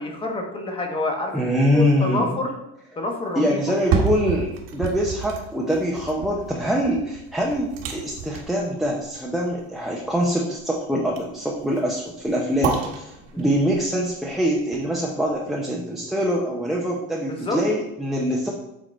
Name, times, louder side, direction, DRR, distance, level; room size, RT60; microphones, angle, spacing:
voice 1, 0.0-1.4 1.7-2.5 3.0-3.6 12.5-12.6 13.3-13.4 17.3-17.6, left 2 dB, 15° left, 2 dB, 1.1 m, -27 dB
voice 2, 1.3-2.3 3.4-13.1 13.4-18.5, equal, ahead, -2 dB, 0.6 m, -24 dB
sound 1, 3.6-15.7 16.1-16.2, right 6 dB, 55° right, 1.3 m, -31 dB
8.0 x 3.8 x 4.3 m, 0.89 s
cardioid pair, 155°, 30 cm